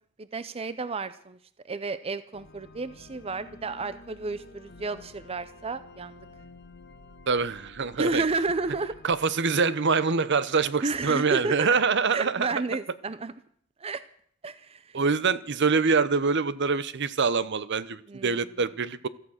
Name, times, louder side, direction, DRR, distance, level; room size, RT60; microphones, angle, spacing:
voice 1, 0.2-1.4 1.6-6.2 7.9-9.0 10.8-11.8 12.1-13.3 13.8-14.0 14.4-15.0 18.1-18.4, right 3 dB, 30° right, 14 dB, 0.6 m, -31 dB
sound 1, 2.3-9.3, left 2 dB, 50° left, 1.4 m, -51 dB
voice 2, 7.3-8.2 9.0-12.5 14.9-19.1, right 5 dB, 55° right, 16 dB, 0.8 m, -25 dB
16.0 x 14.0 x 6.4 m, 0.62 s
head